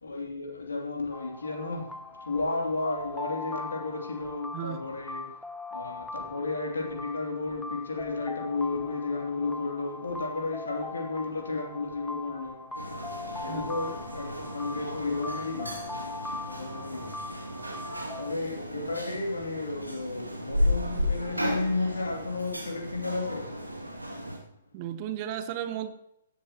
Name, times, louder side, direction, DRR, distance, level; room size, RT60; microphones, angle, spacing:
voice 1, 0.0-5.3 5.7-12.6 13.4-15.8 16.5-17.2 18.2-23.5, left 3 dB, 70° left, 2.9 m, -33 dB
sound 1, 1.1-18.3, left 3 dB, 5° left, 0.8 m, -41 dB
sound 2, 12.7-24.4, left 1 dB, 90° right, 2.4 m, -34 dB
voice 2, 24.7-25.9, right 10 dB, 35° right, 1.0 m, -34 dB
16.0 x 11.5 x 3.0 m
figure-of-eight pair, 120°, 0 cm